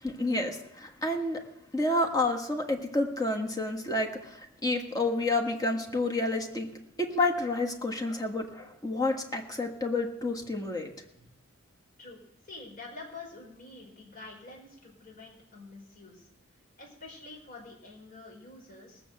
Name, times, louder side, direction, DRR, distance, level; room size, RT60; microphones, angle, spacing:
voice 1, 0.0-1.4 1.7-6.7 7.0-10.9, left 2 dB, 20° left, 2 dB, 1.6 m, -29 dB
voice 2, 12.4-16.2 16.8-19.0, left 3 dB, 45° left, -1 dB, 4.3 m, -47 dB
19.0 x 7.0 x 7.7 m, 0.80 s
head